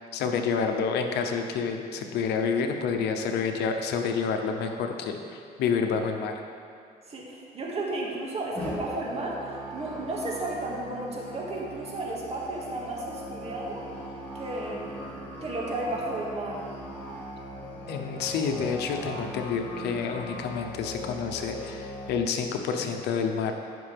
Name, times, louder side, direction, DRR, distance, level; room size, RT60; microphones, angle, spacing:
voice 1, 0.1-6.4 17.9-23.5, left 6 dB, 80° left, 4 dB, 0.9 m, -29 dB
voice 2, 7.1-13.8 14.3-15.0 15.4-16.7, right 2 dB, 40° right, -3 dB, 2.1 m, -33 dB
Musical instrument, 8.5-22.1, equal, 10° left, 2.1 m, -40 dB
15.5 x 6.0 x 3.5 m, 2.3 s
cardioid pair, 110°, 17 cm